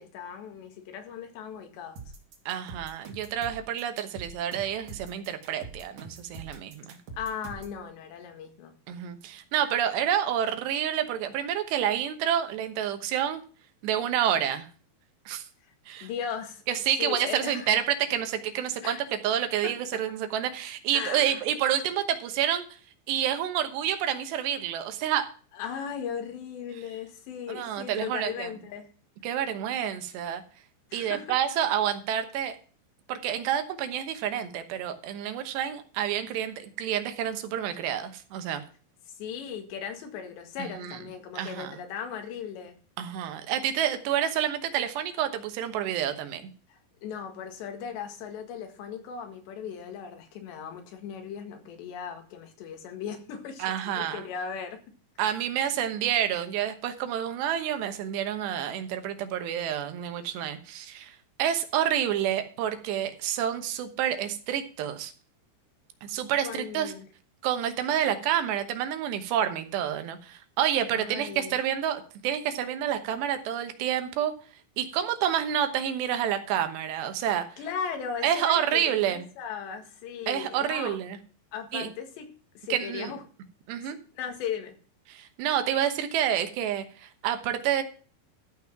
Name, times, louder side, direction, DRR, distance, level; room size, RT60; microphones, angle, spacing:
voice 1, 0.0-2.0 7.2-8.7 16.0-16.6 17.0-17.7 18.8-19.0 19.6-19.7 20.9-21.4 25.5-28.9 30.9-31.4 39.1-42.8 46.7-53.7 54.0-54.8 55.2-55.3 66.4-67.1 70.9-71.6 77.6-81.0 81.5-83.2 84.2-84.8, left 7 dB, 85° left, 3.9 m, -37 dB
sound 1, 2.0-7.8, right 4 dB, 55° right, 3.5 m, -44 dB
voice 2, 2.5-7.0 8.9-13.4 13.8-14.7 15.3-15.5 15.9-16.1 16.7-19.0 19.2-22.7 23.1-25.3 27.5-28.5 29.2-30.4 30.9-32.6 33.1-38.6 40.6-41.0 41.4-41.8 43.0-46.5 53.6-54.2 55.2-65.1 66.0-66.9 67.4-74.3 74.8-77.5 78.2-79.2 80.3-81.2 81.7-81.9 82.7-83.1 83.7-84.0 85.1-87.8, right 10 dB, 80° right, 3.3 m, -28 dB
13.5 x 6.0 x 5.9 m
omnidirectional pair, 4.9 m